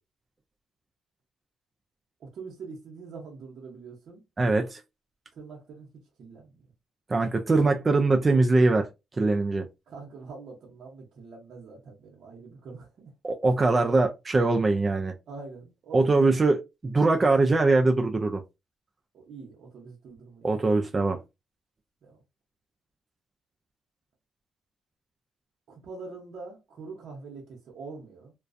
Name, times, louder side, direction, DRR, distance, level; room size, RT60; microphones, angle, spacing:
voice 1, 2.2-4.2 5.3-6.7 9.9-13.1 15.3-16.2 19.1-20.6 22.0-22.2 25.7-28.3, right 4 dB, 65° right, 0.7 m, -44 dB
voice 2, 4.4-4.8 7.1-8.9 9.2-9.7 13.2-15.1 15.9-18.4 20.4-21.2, right 3 dB, 30° right, 0.4 m, -22 dB
2.3 x 2.2 x 2.5 m
cardioid pair, 90°, 0 cm